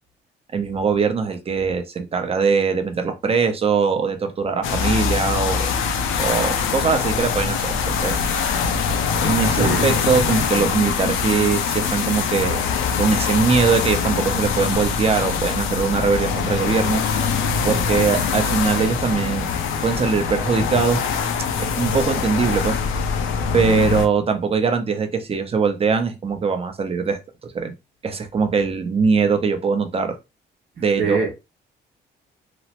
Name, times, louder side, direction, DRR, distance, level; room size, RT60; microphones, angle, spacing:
voice 1, 0.5-5.7 6.2-8.2 9.2-12.6 13.0-17.0 17.6-19.5 19.8-21.0 21.6-22.8 23.5-27.7 28.0-30.2 30.8-31.2, right 5 dB, 30° right, 0.6 m, -21 dB
sound 1, 4.6-24.1, left 6 dB, 90° left, 0.5 m, -23 dB
voice 2, 9.6-10.0 30.9-31.3, right 4 dB, 65° right, 0.9 m, -24 dB
3.0 x 2.0 x 2.9 m
cardioid pair, 90°, 20 cm